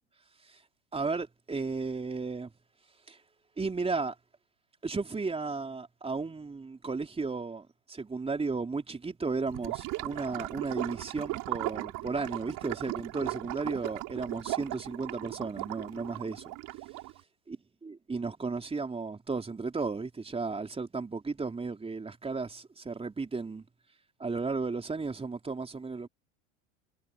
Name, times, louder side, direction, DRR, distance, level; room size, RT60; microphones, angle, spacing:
voice 1, 0.9-2.5 3.1-3.2 3.6-4.1 4.8-16.5 17.5-17.6 17.8-23.6 24.2-26.1, right 4 dB, 15° right, 3.8 m, -34 dB
Gurgling / Liquid, 9.5-17.2, right 20 dB, 50° right, 5.5 m, -37 dB
hypercardioid pair, 85°, 38 cm